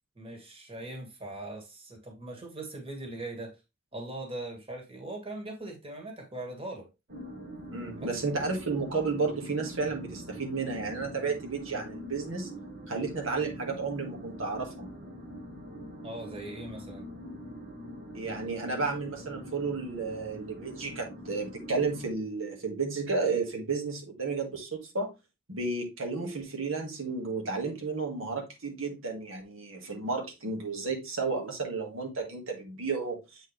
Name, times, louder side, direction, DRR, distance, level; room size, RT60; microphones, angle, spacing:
voice 1, 0.2-3.6 3.9-6.9 8.0-8.1 16.0-17.1, right 2 dB, 30° right, 1.9 m, -40 dB
sound 1, 7.1-22.1, equal, 50° right, 1.2 m, -44 dB
voice 2, 7.7-12.5 12.9-14.9 18.1-25.1 25.5-33.4, right 4 dB, 85° right, 1.9 m, -32 dB
8.0 x 4.2 x 3.3 m
head